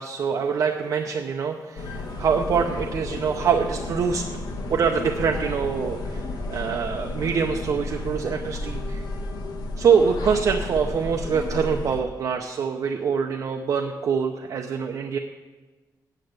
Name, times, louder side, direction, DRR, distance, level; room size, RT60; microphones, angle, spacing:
voice 1, 0.0-4.3 4.7-9.0 9.8-15.2, right 6 dB, 55° right, 3 dB, 0.6 m, -24 dB
sound 1, 1.8-12.0, left 2 dB, 85° left, 1.4 m, -32 dB
8.8 x 7.5 x 7.9 m, 1.3 s
wide cardioid pair, 170°, 7 cm